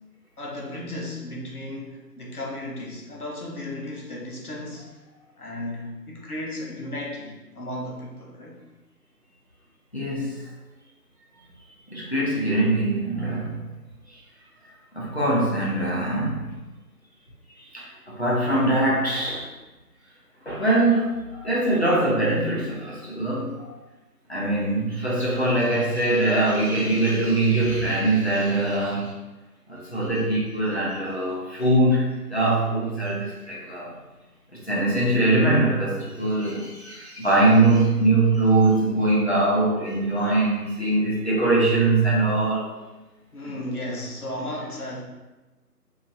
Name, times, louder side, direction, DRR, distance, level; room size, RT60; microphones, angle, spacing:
voice 1, 0.4-5.0 5.4-8.6 43.3-45.0, left 1 dB, 65° left, -2 dB, 0.9 m, -34 dB
voice 2, 9.9-10.4 11.9-13.6 14.9-16.5 17.7-19.5 20.5-23.7 24.3-29.1 29.7-33.9 34.6-42.7, right 2 dB, 45° left, -6 dB, 0.7 m, -22 dB
2.8 x 2.7 x 2.6 m, 1.1 s
figure-of-eight pair, 170°, 48 cm